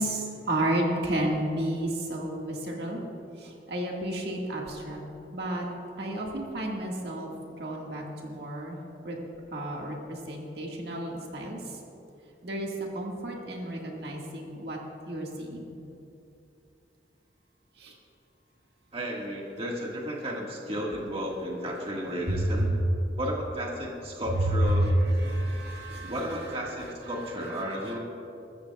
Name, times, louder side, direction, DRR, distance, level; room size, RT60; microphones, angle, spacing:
voice 1, 0.0-3.0 3.4-5.0 5.3-5.7 6.0-7.3 7.6-8.8 9.0-9.2 9.5-11.6 12.4-12.7 12.9-14.8 15.1-15.8 17.8-17.9 22.3-22.7 24.5-26.4, right 1 dB, 65° right, -1 dB, 1.8 m, -30 dB
voice 2, 18.9-22.7 23.2-25.0 26.1-28.0, equal, 35° right, -2 dB, 1.7 m, -33 dB
22.0 x 13.5 x 2.3 m, 2.7 s
head